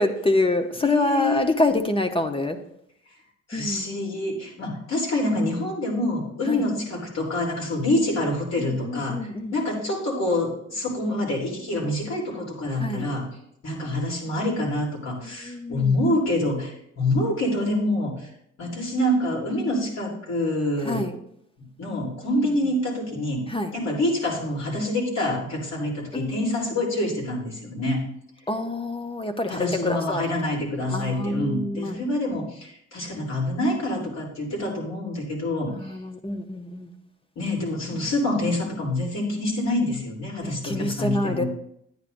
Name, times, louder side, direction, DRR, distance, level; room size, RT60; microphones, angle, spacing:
voice 1, 0.0-2.6 3.5-3.8 6.5-6.6 8.6-9.5 12.8-13.1 15.4-15.9 20.8-21.1 23.5-23.7 26.1-26.4 28.5-30.3 30.9-31.9 35.7-36.9 40.4-41.5, left 2 dB, 20° left, 7 dB, 0.8 m, -26 dB
voice 2, 0.8-1.4 3.5-9.2 9.5-13.3 13.6-18.3 18.6-21.1 21.6-23.4 23.7-28.0 29.5-35.7 37.3-41.5, left 1 dB, 60° left, -3 dB, 3.3 m, -26 dB
9.9 x 9.6 x 2.6 m, 0.72 s
cardioid pair, 90°, 30 cm